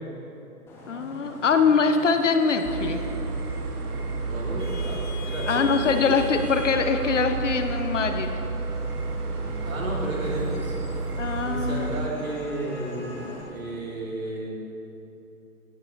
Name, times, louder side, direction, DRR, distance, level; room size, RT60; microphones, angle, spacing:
Vehicle horn car horn honking / Traffic noise roadway noise, 0.7-13.4, left 2 dB, 5° left, 0.9 m, -41 dB
voice 1, 0.9-3.0 5.5-8.3 11.2-12.3, left 5 dB, 55° left, 7 dB, 0.8 m, -23 dB
sound 1, 2.6-12.1, right 4 dB, 85° right, 0.7 m, -31 dB
voice 2, 4.2-6.2 9.6-10.8 11.4-14.5, right 1 dB, 60° right, -3 dB, 2.8 m, -33 dB
16.5 x 7.5 x 3.7 m, 2.9 s
figure-of-eight pair, 130°, 45 cm